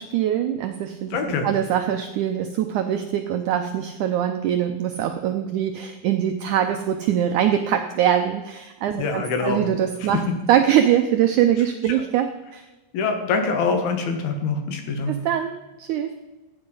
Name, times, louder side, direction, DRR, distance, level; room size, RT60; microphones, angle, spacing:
voice 1, 0.0-10.2 10.5-12.7 15.1-16.1, right 10 dB, 80° right, 6 dB, 1.8 m, -23 dB
voice 2, 1.1-1.5 8.9-9.6 10.0-10.1 11.9-12.0 12.9-15.1, left 4 dB, 80° left, 5 dB, 3.5 m, -24 dB
15.0 x 9.1 x 5.4 m, 1.1 s
omnidirectional pair, 4.2 m